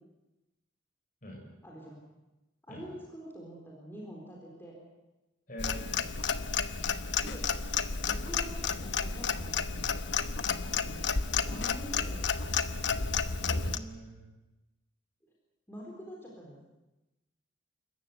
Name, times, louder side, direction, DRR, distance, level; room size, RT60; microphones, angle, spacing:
voice 1, 1.6-2.0 2.6-4.8 7.2-7.5 8.1-9.6 10.4-11.1 11.5-12.7 15.7-16.6, equal, 10° left, -3 dB, 4.1 m, -46 dB
voice 2, 5.5-6.0 13.4-14.2, equal, 45° left, 1 dB, 6.8 m, -43 dB
Clock, 5.6-13.8, left 5 dB, 65° left, 1.0 m, -31 dB
26.5 x 14.5 x 9.7 m, 1.0 s
head